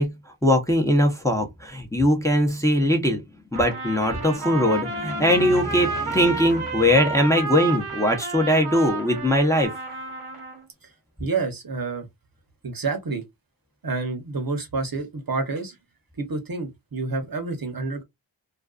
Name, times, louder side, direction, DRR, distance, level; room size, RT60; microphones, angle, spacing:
voice 1, 0.0-3.2 3.5-9.7, left 1 dB, 5° left, 0.7 m, -21 dB
Trumpet, 3.5-10.7, right 4 dB, 90° right, 0.9 m, -31 dB
voice 2, 11.2-12.1 12.6-13.2 13.8-15.8 16.2-18.0, right 3 dB, 45° right, 0.8 m, -28 dB
2.4 x 2.3 x 2.3 m
cardioid pair, 50°, 49 cm